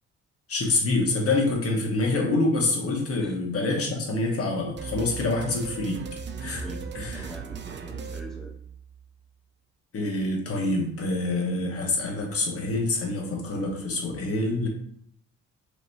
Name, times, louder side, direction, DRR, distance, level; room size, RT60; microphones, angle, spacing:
voice 1, 0.5-6.0 6.4-6.6 6.9-7.3 9.9-14.7, left 2 dB, 50° left, 0 dB, 1.3 m, -26 dB
sound 1, 4.8-9.1, right 5 dB, 40° right, 0.5 m, -37 dB
voice 2, 6.6-8.5, equal, ahead, -1 dB, 0.7 m, -44 dB
4.9 x 3.0 x 2.7 m, 0.64 s
cardioid pair, 90°, 30 cm